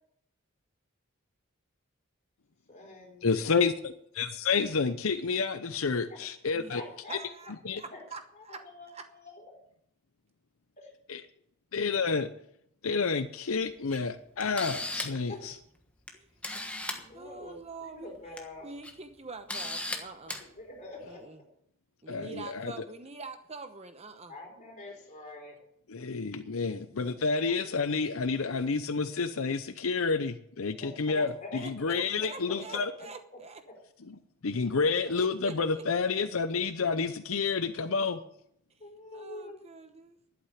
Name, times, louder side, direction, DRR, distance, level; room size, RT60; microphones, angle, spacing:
voice 1, 2.7-3.7 6.1-6.2 6.7-7.5 7.9-8.0 8.3-9.6 10.8-10.9 15.3-15.5 16.9-18.7 20.4-21.2 24.3-25.6 27.2-27.7 30.8-33.4 33.7-33.8 38.8-39.6, left 2 dB, 35° left, 0 dB, 4.7 m, -46 dB
voice 2, 3.2-6.8 7.6-7.8 11.1-11.2 11.7-12.3 12.8-15.5 22.1-22.7 25.9-31.3 31.6-32.9 34.4-38.2, left 4 dB, 75° left, 10 dB, 0.7 m, -29 dB
voice 3, 7.1-7.5 7.8-8.6 8.9-9.0 16.1-16.3 17.1-18.1 18.6-20.4 21.1-21.4 22.0-24.3 31.6-33.6 35.2-35.8 39.1-40.2, right 3 dB, 30° right, 8 dB, 1.0 m, -45 dB
Camera, 13.9-14.0 14.4-15.2 16.1-16.2 16.4-17.0 18.2-18.4 18.8-18.9 19.5-20.0 20.3-20.4, left 2 dB, 5° left, 1.3 m, -35 dB
12.0 x 8.6 x 9.5 m, 0.72 s
head